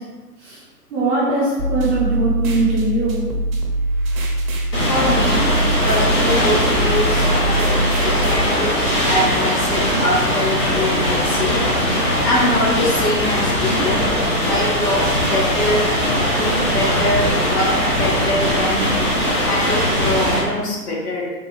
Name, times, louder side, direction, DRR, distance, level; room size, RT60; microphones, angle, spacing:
voice 1, 0.9-3.3, right 2 dB, 20° right, -11 dB, 0.7 m, -21 dB
sound 1, 1.6-8.4, right 1 dB, 60° right, 0.7 m, -22 dB
sound 2, 4.7-20.4, equal, 20° left, 0.5 m, -20 dB
voice 2, 4.9-5.5 5.8-8.8 9.1-11.6 12.2-14.1 14.4-15.9 16.3-18.9 19.4-21.3, left 1 dB, 70° left, -3 dB, 1.2 m, -23 dB
3.4 x 2.2 x 3.0 m, 1.3 s
figure-of-eight pair, 125°, 48 cm